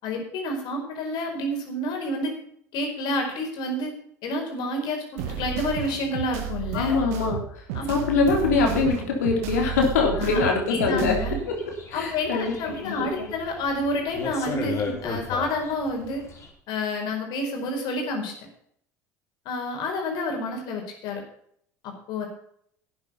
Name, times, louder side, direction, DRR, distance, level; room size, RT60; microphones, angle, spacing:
voice 1, 0.0-2.3 2.7-3.9 4.2-7.0 7.7-7.9 10.2-10.4 10.7-11.4 11.9-16.2 16.7-18.3 19.4-21.2 21.8-22.3, left 1 dB, 60° left, 2 dB, 4.9 m, -29 dB
sound 1, 5.2-11.4, right 8 dB, 70° right, 1.8 m, -32 dB
voice 2, 6.7-7.4 7.9-11.2 11.9-13.3, left 4 dB, 80° left, 1 dB, 3.7 m, -23 dB
sound 2, 8.2-16.5, left 5 dB, 35° left, 4.6 m, -38 dB
12.5 x 8.7 x 5.6 m, 0.67 s
hypercardioid pair, 70°, 8 cm